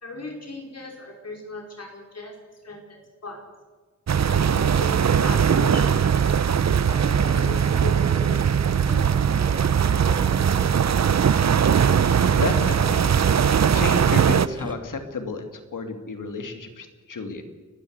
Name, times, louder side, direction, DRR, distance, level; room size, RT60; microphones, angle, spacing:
voice 1, 0.0-2.3 2.6-3.4 4.3-8.4 8.8-9.1, left 1 dB, 55° left, 1 dB, 5.1 m, -38 dB
sound 1, 4.1-14.5, right 7 dB, 60° right, 0.7 m, -20 dB
sound 2, 6.9-14.7, right 1 dB, 15° right, 1.5 m, -40 dB
voice 2, 12.3-13.0 13.7-17.4, left 3 dB, 80° left, 6 dB, 2.5 m, -31 dB
30.0 x 11.5 x 8.0 m, 1.4 s
wide cardioid pair, 80°, 31 cm